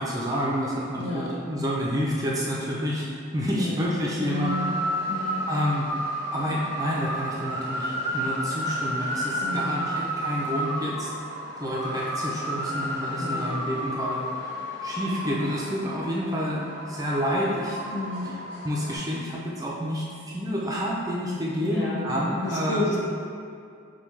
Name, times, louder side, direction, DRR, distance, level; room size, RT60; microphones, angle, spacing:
voice 1, 0.0-3.1 3.3-4.8 5.5-5.9 6.3-11.1 11.6-14.6 14.8-17.8 18.6-22.8, equal, 15° right, -5 dB, 0.4 m, -29 dB
voice 2, 1.0-1.3 3.5-3.7 4.2-4.7 5.1-5.5 9.4-10.0 13.1-13.6 17.9-18.4 21.6-22.1 22.4-23.0, left 2 dB, 55° left, -5 dB, 0.9 m, -31 dB
sound 1, 4.4-19.0, equal, 10° left, 0.9 m, -32 dB
6.7 x 2.2 x 3.2 m, 2.4 s
head